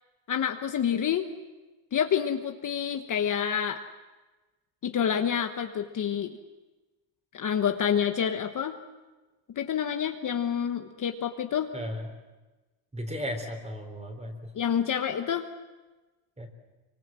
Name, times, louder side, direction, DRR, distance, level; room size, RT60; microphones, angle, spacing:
voice 1, 0.3-1.3 1.9-3.8 4.8-6.4 7.3-8.8 9.6-11.7 14.5-15.5, left 8 dB, 40° left, 6 dB, 1.2 m, -28 dB
voice 2, 11.7-12.1 12.9-14.5 16.4-16.5, equal, 15° right, 5 dB, 3.8 m, -35 dB
25.0 x 24.5 x 7.6 m, 1.2 s
cardioid pair, 140°, 49 cm